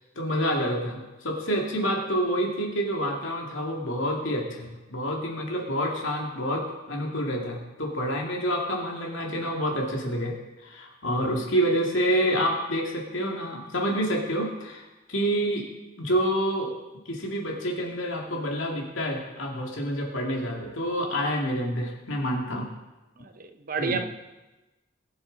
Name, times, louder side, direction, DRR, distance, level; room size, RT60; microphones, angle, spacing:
voice 1, 0.0-10.3 10.6-15.7 16.0-16.7 17.1-22.7 23.8-24.0, equal, 85° left, 0 dB, 2.4 m, -28 dB
voice 2, 23.2-24.0, right 4 dB, 45° right, 7 dB, 0.9 m, -30 dB
20.5 x 7.2 x 4.0 m, 1.1 s
head